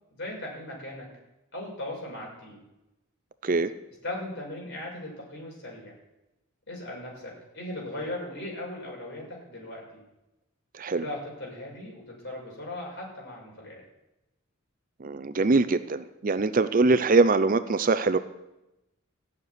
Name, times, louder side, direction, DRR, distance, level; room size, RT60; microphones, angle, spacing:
voice 1, 0.1-1.1 1.5-2.6 4.0-5.9 6.7-10.0 11.0-13.8, left 1 dB, 55° left, -2 dB, 6.2 m, -38 dB
voice 2, 10.7-11.0 15.0-18.2, right 3 dB, 40° right, 12 dB, 0.5 m, -23 dB
15.5 x 6.7 x 9.6 m, 0.95 s
head